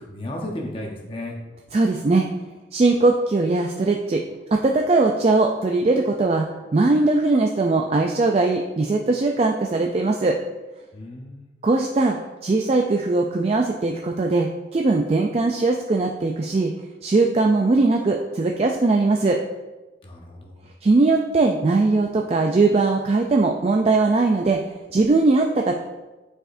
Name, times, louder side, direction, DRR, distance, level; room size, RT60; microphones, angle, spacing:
voice 1, 0.0-1.3 10.9-11.5 20.0-20.6, left 1 dB, 30° left, 0 dB, 0.8 m, -34 dB
voice 2, 1.7-2.3 2.7-4.2 4.5-6.5 6.7-10.4 11.6-12.2 12.4-16.7 17.0-19.4 20.8-24.6 24.9-25.8, right 3 dB, 30° right, 2 dB, 0.3 m, -20 dB
8.7 x 4.9 x 2.6 m, 1.1 s
head